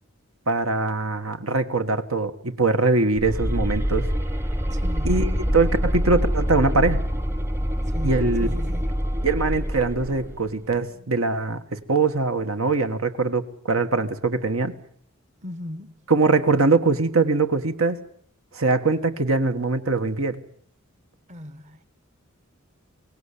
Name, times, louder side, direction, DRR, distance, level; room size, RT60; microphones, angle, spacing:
voice 1, 0.5-4.1 5.0-7.0 8.0-8.5 9.2-14.7 16.1-18.0 18.5-20.4, right 3 dB, 80° right, 1.6 m, -22 dB
sound 1, 3.1-10.4, equal, 10° right, 0.8 m, -25 dB
voice 2, 4.7-5.2 7.8-8.9 15.4-16.0 21.3-21.8, left 1 dB, 35° right, 1.0 m, -37 dB
Bass guitar, 5.1-9.8 10.0-11.3, left 3 dB, 55° right, 3.8 m, -46 dB
23.5 x 18.0 x 8.5 m
head